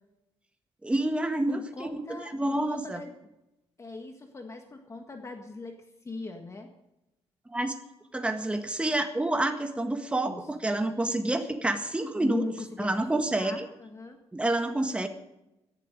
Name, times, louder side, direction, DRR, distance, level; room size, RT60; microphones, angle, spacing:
voice 1, 0.8-3.0 7.5-7.7 8.1-12.4 12.8-13.6 14.3-15.1, right 1 dB, 10° right, 6 dB, 1.6 m, -28 dB
voice 2, 1.5-3.1 3.8-6.7 10.2-10.5 12.2-14.2, left 3 dB, 25° left, 5 dB, 1.6 m, -39 dB
17.5 x 12.0 x 5.3 m, 0.91 s
wide cardioid pair, 155°, 11 cm